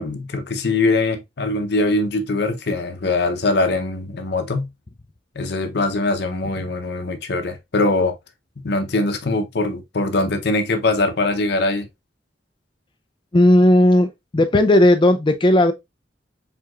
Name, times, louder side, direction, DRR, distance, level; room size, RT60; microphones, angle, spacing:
voice 1, 0.0-4.7 5.3-8.2 8.6-11.9, left 2 dB, 60° left, 0.7 m, -22 dB
voice 2, 13.3-15.7, left 1 dB, 25° left, 0.4 m, -15 dB
4.7 x 3.4 x 2.3 m
head